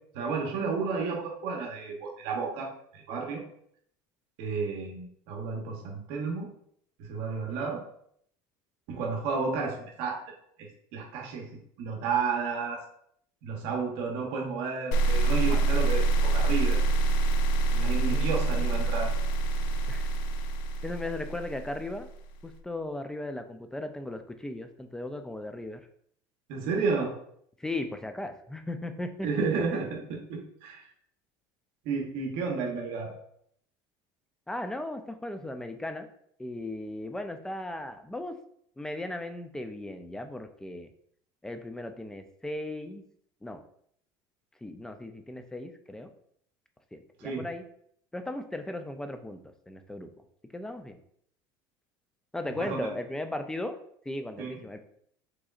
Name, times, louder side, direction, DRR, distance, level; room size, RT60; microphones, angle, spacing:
voice 1, 0.1-3.4 4.4-6.5 7.0-7.8 8.9-10.2 10.6-11.5 11.8-12.8 13.4-16.8 17.8-19.1 26.5-27.1 29.2-30.9 31.8-33.2 47.2-47.5 52.6-52.9 54.4-54.6, right 5 dB, 70° right, 1 dB, 1.1 m, -32 dB
sound 1, 14.9-22.0, right 2 dB, 85° left, 0.5 m, -26 dB
voice 2, 17.7-18.7 19.9-20.1 20.8-22.1 22.4-25.8 27.6-29.3 34.5-36.1 36.4-38.3 38.8-40.9 41.4-43.0 43.4-43.6 44.6-46.1 46.9-47.6 48.1-49.4 49.7-50.1 50.5-51.0 52.3-53.7 54.1-54.8, left 1 dB, 5° left, 7 dB, 0.3 m, -37 dB
4.9 x 4.0 x 2.4 m, 0.67 s
cardioid pair, 145°, 10 cm